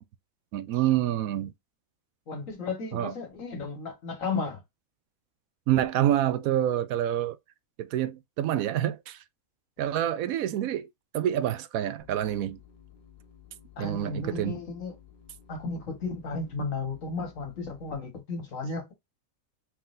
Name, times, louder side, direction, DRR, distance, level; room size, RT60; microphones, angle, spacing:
voice 1, 0.5-1.5 2.9-3.1 5.7-7.4 7.8-9.2 9.8-10.9 11.1-12.6 13.8-14.6, right 12 dB, 75° right, 1.0 m, -27 dB
voice 2, 2.3-4.6 13.8-15.0 15.5-18.9, left 3 dB, 65° left, 1.8 m, -34 dB
sound 1, 12.0-17.9, left 8 dB, 50° left, 1.2 m, -55 dB
4.4 x 3.8 x 2.6 m
omnidirectional pair, 1.5 m